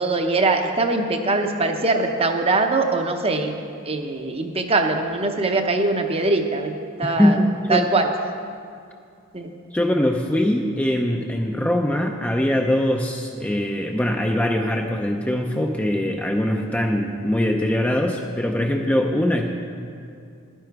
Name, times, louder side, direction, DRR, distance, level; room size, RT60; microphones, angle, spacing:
voice 1, 0.0-3.5 3.8-6.7 7.0-7.4 7.7-8.1 9.3-9.5, right 3 dB, 25° right, 5 dB, 0.7 m, -22 dB
voice 2, 7.0-7.8 9.7-19.5, left 1 dB, 5° left, 2 dB, 0.5 m, -22 dB
12.0 x 9.9 x 4.6 m, 2.4 s
head